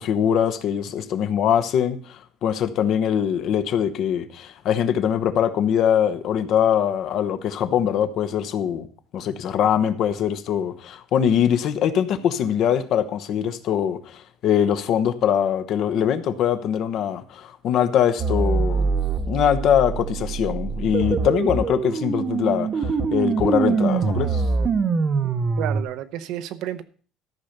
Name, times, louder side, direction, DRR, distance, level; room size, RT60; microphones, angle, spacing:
voice 1, 0.0-8.9 9.1-18.9 19.3-24.4, left 9 dB, 45° left, 0.9 m, -22 dB
sound 1, 18.2-25.8, right 5 dB, 25° right, 0.8 m, -24 dB
voice 2, 25.2-26.8, right 12 dB, 60° right, 0.9 m, -31 dB
13.5 x 5.8 x 6.6 m
cardioid pair, 175°, 0 cm